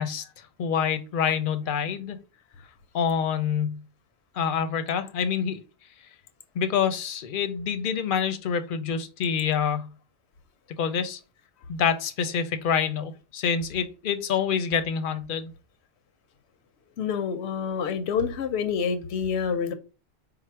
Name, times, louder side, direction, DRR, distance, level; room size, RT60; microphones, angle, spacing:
voice 1, 0.0-2.2 2.9-3.8 4.3-5.6 6.6-9.9 10.8-11.2 11.7-15.5, left 7 dB, 60° left, 0.6 m, -27 dB
voice 2, 17.0-19.7, left 6 dB, 90° left, 0.9 m, -27 dB
4.6 x 2.0 x 4.3 m
omnidirectional pair, 1.1 m